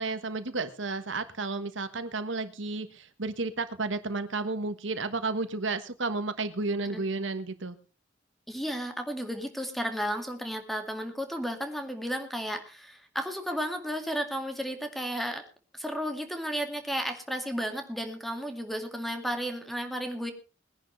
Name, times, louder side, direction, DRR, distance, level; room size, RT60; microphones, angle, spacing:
voice 1, 0.0-7.8, right 3 dB, 85° right, 10 dB, 1.4 m, -32 dB
voice 2, 8.5-15.4 15.7-20.3, equal, ahead, 6 dB, 2.1 m, -33 dB
21.5 x 10.5 x 3.3 m, 0.34 s
head